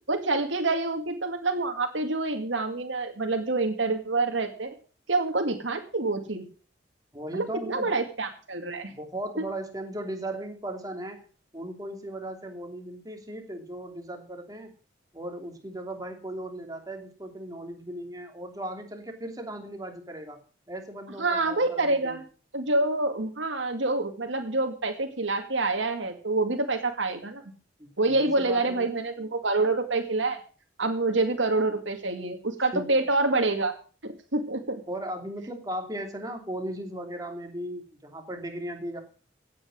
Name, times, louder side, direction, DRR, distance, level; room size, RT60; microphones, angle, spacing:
voice 1, 0.1-4.7 5.1-6.4 7.3-8.9 21.2-22.2 22.5-27.4 28.0-30.4 30.8-33.7 34.0-34.8, right 2 dB, 85° right, 4 dB, 2.1 m, -27 dB
voice 2, 7.1-7.9 8.9-11.2 11.5-14.7 15.1-22.2 27.8-28.9 32.7-33.0 34.9-39.0, right 1 dB, 20° right, 4 dB, 2.8 m, -37 dB
16.5 x 8.4 x 6.4 m, 0.39 s
head